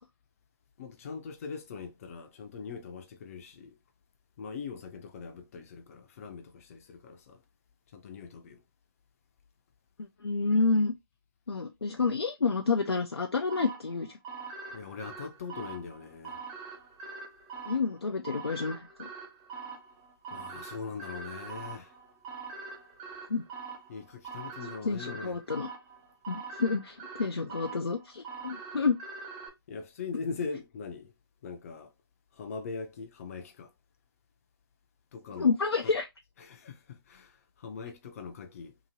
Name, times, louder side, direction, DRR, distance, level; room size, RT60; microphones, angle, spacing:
voice 1, 0.8-3.8 4.4-7.4 7.9-8.6 14.7-16.4 20.3-21.9 23.9-25.4 29.7-31.1 31.4-31.9 32.3-33.7 35.1-35.5 35.8-35.9 36.4-38.7, left 5 dB, 35° left, 0.6 m, -41 dB
voice 2, 10.2-10.9 11.5-14.1 17.7-19.1 23.3-23.4 24.8-25.7 26.3-29.0 35.4-36.1, left 4 dB, 90° left, 0.5 m, -29 dB
sound 1, 13.5-29.5, right 5 dB, 15° right, 0.5 m, -44 dB
2.9 x 2.7 x 2.7 m
figure-of-eight pair, 145°, 13 cm